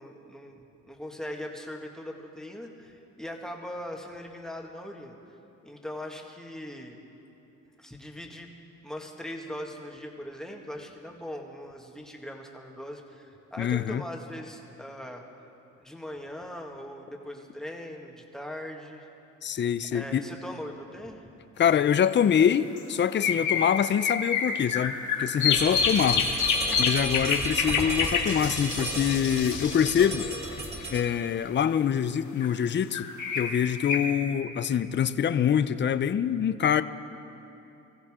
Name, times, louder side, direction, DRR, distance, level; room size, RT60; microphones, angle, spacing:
voice 1, 0.0-5.1 5.6-7.0 7.8-8.5 8.8-15.3 15.8-19.1 19.9-21.2 26.7-26.9, left 1 dB, ahead, 0 dB, 1.9 m, -40 dB
voice 2, 13.6-14.0 19.4-20.3 21.6-26.3 26.8-30.3 30.9-33.1 33.3-36.8, left 8 dB, 40° left, 13 dB, 0.5 m, -25 dB
sound 1, 21.7-21.8 22.8-31.2 32.4-34.0, left 6 dB, 70° left, 2.1 m, -28 dB
sound 2, 25.5-31.0, right 1 dB, 20° right, 3.2 m, -34 dB
23.5 x 15.0 x 3.7 m, 2.9 s
cardioid pair, 90°, 30 cm